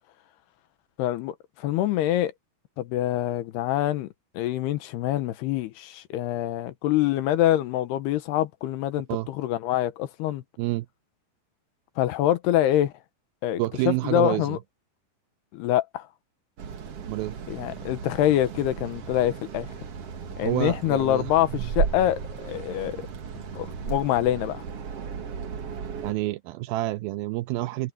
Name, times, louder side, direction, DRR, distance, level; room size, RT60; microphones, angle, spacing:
voice 1, 1.0-2.3 2.8-4.1 4.3-10.4 12.0-12.9 13.4-13.6 13.9-14.6 15.5-16.1 17.5-19.7 20.4-23.0 23.5-24.6, left 13 dB, 80° left, 3.0 m, -25 dB
voice 2, 13.6-14.6 17.1-17.4 20.4-21.7 26.0-27.9, right 18 dB, 85° right, 2.1 m, -28 dB
sound 1, 16.6-26.1, right 6 dB, 55° right, 1.9 m, -35 dB
omnidirectional pair, 4.7 m